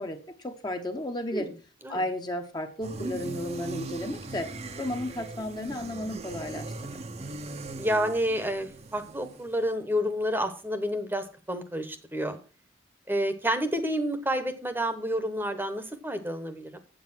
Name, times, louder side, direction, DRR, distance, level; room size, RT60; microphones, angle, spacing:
voice 1, 0.0-1.5 1.9-4.5 4.8-7.0, left 1 dB, 20° left, 5 dB, 0.9 m, -33 dB
sound 1, 2.8-9.7, right 2 dB, 35° right, 0.7 m, -39 dB
voice 2, 7.7-12.4 13.1-16.8, equal, 10° right, 9 dB, 1.0 m, -29 dB
8.1 x 7.7 x 6.0 m, 0.36 s
head